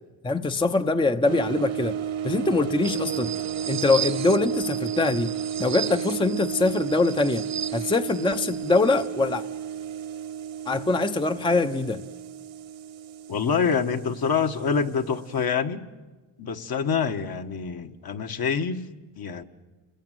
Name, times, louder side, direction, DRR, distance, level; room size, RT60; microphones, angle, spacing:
voice 1, 0.2-2.0 2.2-3.3 3.7-5.3 5.6-7.5 7.7-9.4 10.7-12.0, left 3 dB, 10° left, 8 dB, 0.8 m, -23 dB
sound 1, 1.2-15.4, right 9 dB, 75° right, 1.9 m, -33 dB
sound 2, 2.8-9.1, right 8 dB, 35° right, 0.8 m, -35 dB
voice 2, 13.3-15.8 16.4-18.9 19.2-19.4, left 6 dB, 50° left, 6 dB, 1.5 m, -26 dB
29.0 x 20.5 x 9.3 m, 1.3 s
cardioid pair, 105°, 48 cm